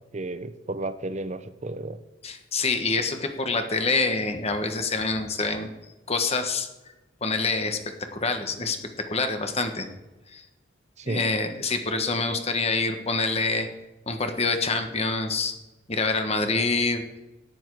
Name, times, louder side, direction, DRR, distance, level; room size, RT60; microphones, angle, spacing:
voice 1, 0.1-2.0 11.0-11.2 11.9-12.0, right 2 dB, 40° right, 12 dB, 0.8 m, -33 dB
voice 2, 2.2-5.7 6.1-6.7 7.2-7.8 8.1-8.8 9.1-9.9 10.3-10.4 11.1-13.7 14.1-15.5 15.9-17.0, left 3 dB, 35° left, 7 dB, 1.4 m, -26 dB
13.5 x 10.0 x 4.8 m, 1.1 s
head